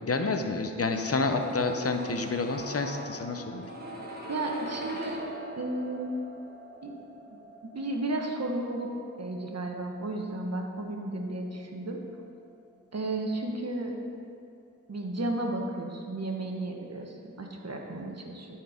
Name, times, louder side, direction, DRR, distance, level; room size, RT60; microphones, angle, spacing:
voice 1, 0.0-3.7, left 3 dB, 45° left, 5 dB, 0.8 m, -29 dB
sound 1, 0.9-12.8 13.0-13.1, equal, 30° right, 1.9 m, -43 dB
voice 2, 4.3-5.3 5.6-6.1 6.8-6.9 7.3-7.4 7.7-8.9 9.2-12.0 12.9-14.2 14.9-18.5, right 2 dB, 55° right, 1 dB, 1.3 m, -33 dB
12.5 x 4.6 x 5.1 m, 2.5 s
cardioid pair, 55°, 32 cm